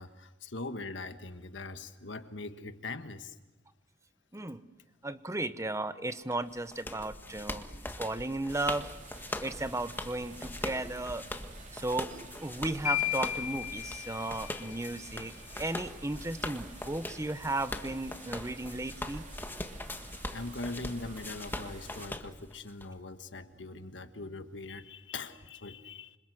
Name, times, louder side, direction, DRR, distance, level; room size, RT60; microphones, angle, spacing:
voice 1, 0.0-3.4 20.3-26.2, left 3 dB, 75° left, 9 dB, 1.6 m, -41 dB
voice 2, 5.0-7.6 8.0-8.9 9.4-11.2 11.7-19.2, right 2 dB, 15° right, 12 dB, 1.0 m, -35 dB
sound 1, 6.3-22.9, left 1 dB, 10° left, 1.6 m, -42 dB
sound 2, 8.5-22.1, right 3 dB, 45° right, 3.4 m, -51 dB
sound 3, 12.8-15.0, left 13 dB, 40° left, 4.8 m, -34 dB
27.0 x 26.0 x 7.9 m, 1.1 s
head